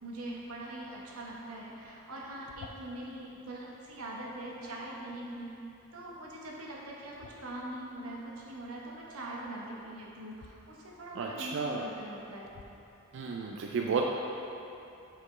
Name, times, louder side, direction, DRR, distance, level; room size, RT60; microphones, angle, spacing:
voice 1, 0.0-5.5 5.9-12.5, right 1 dB, 85° right, -3 dB, 1.0 m, -42 dB
sound 1, 2.5-3.1 7.1-7.8 10.3-10.5 11.5-11.6 12.5-12.9, left 4 dB, 90° left, 0.4 m, -51 dB
voice 2, 11.1-11.9 13.1-14.0, right 5 dB, 55° right, 0 dB, 0.3 m, -32 dB
7.2 x 4.2 x 3.2 m, 2.8 s
head